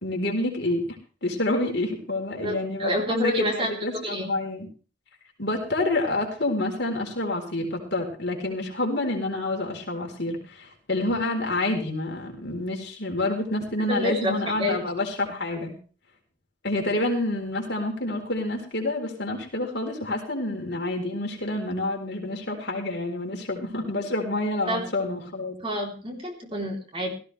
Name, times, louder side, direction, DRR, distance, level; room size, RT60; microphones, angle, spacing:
voice 1, 0.0-0.8 1.2-4.7 5.4-15.8 16.6-25.5, left 2 dB, 55° left, 1 dB, 4.1 m, -28 dB
voice 2, 2.4-3.7 4.0-4.3 13.9-14.8 24.7-24.8 25.6-27.1, equal, 25° right, 1 dB, 3.5 m, -28 dB
17.0 x 15.0 x 3.4 m, 0.37 s
head